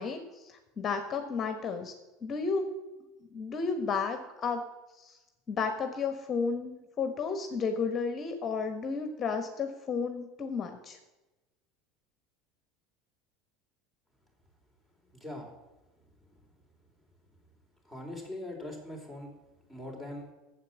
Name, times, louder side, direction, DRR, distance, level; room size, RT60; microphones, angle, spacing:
voice 1, 0.0-1.9 2.2-2.7 3.3-4.6 4.9-5.2 5.5-11.0, left 5 dB, 35° left, 7 dB, 1.3 m, -32 dB
voice 2, 15.0-15.5 17.8-19.3 19.7-20.3, left 1 dB, 10° right, 1 dB, 4.0 m, -41 dB
9.1 x 7.8 x 7.4 m, 1.1 s
hypercardioid pair, 75°, 0 cm